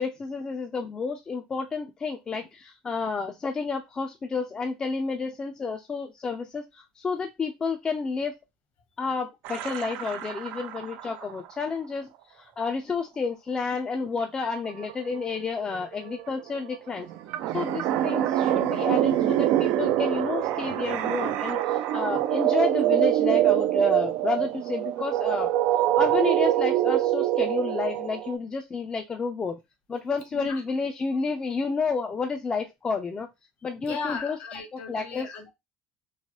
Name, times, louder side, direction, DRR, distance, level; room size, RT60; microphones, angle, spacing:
voice 1, 0.0-8.4 9.0-17.1 17.5-25.5 26.0-29.6 29.9-33.3 33.6-34.4 34.7-35.3, left 4 dB, 25° left, 4 dB, 0.4 m, -30 dB
sound 1, 9.4-11.4 14.4-14.5 14.7-28.3, right 13 dB, 70° right, 0.3 m, -25 dB
voice 2, 30.3-30.6 33.8-35.5, left 5 dB, 60° left, 6 dB, 1.1 m, -36 dB
3.1 x 2.1 x 2.9 m, 0.21 s
supercardioid pair, 95°, 3 cm